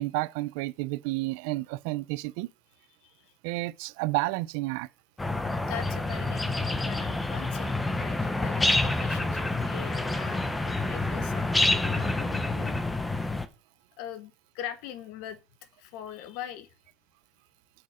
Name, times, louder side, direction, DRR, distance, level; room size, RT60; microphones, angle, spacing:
voice 1, 0.0-2.5 3.4-4.9, right 21 dB, 65° right, 0.5 m, -31 dB
voice 2, 3.0-3.3 5.7-13.2 14.0-15.4 15.8-16.7, left 11 dB, 55° left, 1.3 m, -42 dB
sound 1, 5.2-13.5, left 2 dB, 5° left, 0.8 m, -28 dB
7.7 x 7.6 x 5.0 m
cardioid pair, 165°, 0 cm